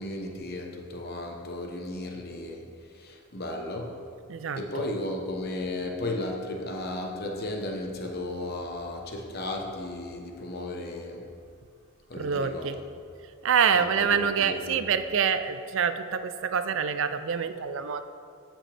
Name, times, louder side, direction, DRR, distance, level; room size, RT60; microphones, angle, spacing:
voice 1, 0.0-2.7 2.9-4.0 4.6-11.3 12.1-12.8 13.7-14.9, left 1 dB, 45° left, 1 dB, 1.0 m, -35 dB
voice 2, 12.2-12.8 13.4-18.0, right 7 dB, 55° right, 10 dB, 0.4 m, -26 dB
14.0 x 6.2 x 3.4 m, 2.4 s
head